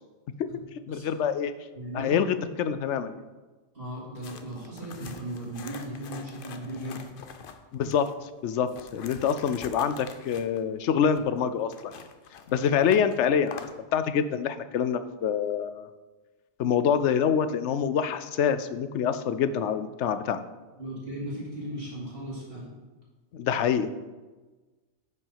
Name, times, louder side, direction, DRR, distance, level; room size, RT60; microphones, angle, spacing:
voice 1, 0.9-1.5 1.9-3.2 7.7-12.1 12.5-15.9 16.6-20.4 23.3-24.0, left 7 dB, 85° left, 11 dB, 0.9 m, -26 dB
voice 2, 1.7-2.2 3.7-7.1 20.7-22.7, right 1 dB, 55° right, -6 dB, 3.7 m, -37 dB
sound 1, 4.2-8.1 8.6-13.8, left 6 dB, 55° left, 0.8 m, -46 dB
9.3 x 5.9 x 5.6 m, 1.2 s
omnidirectional pair, 1.2 m